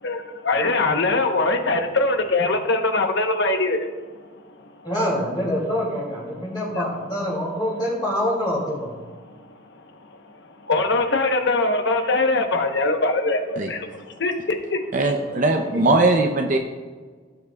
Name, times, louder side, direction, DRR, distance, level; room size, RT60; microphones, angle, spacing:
voice 1, 0.0-3.9 6.7-6.8 10.6-14.8, left 2 dB, 65° left, 5 dB, 1.0 m, -22 dB
voice 2, 4.8-9.0 15.7-15.8, equal, 25° left, -6 dB, 2.6 m, -25 dB
voice 3, 14.9-16.6, right 2 dB, 45° right, 2 dB, 0.6 m, -20 dB
17.0 x 7.8 x 2.3 m, 1.5 s
head